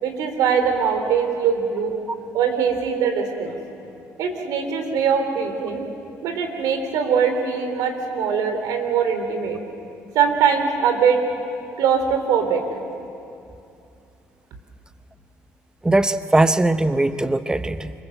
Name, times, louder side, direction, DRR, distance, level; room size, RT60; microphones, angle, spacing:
voice 1, 0.0-2.0 2.3-3.6 4.2-5.9 6.2-9.6 10.1-11.2 11.8-12.6, right 6 dB, 85° right, 6 dB, 3.5 m, -22 dB
voice 2, 15.8-17.9, right 2 dB, 10° right, 11 dB, 0.9 m, -20 dB
26.5 x 24.5 x 7.9 m, 2.6 s
cardioid pair, 90°, 6 cm